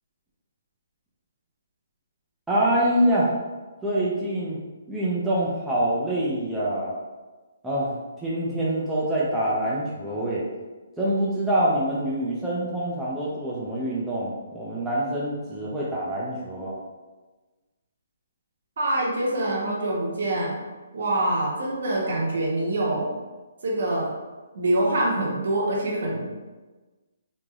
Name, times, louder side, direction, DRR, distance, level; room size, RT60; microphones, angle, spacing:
voice 1, 2.5-3.3 3.8-4.6 4.9-7.0 7.6-10.4 11.0-16.8, right 1 dB, 5° right, -7 dB, 0.4 m, -25 dB
voice 2, 18.8-20.6 20.9-23.1 23.6-24.1 24.5-26.3, right 1 dB, 60° right, -3 dB, 0.9 m, -25 dB
3.2 x 2.5 x 2.3 m, 1.2 s
hypercardioid pair, 160°, 0 cm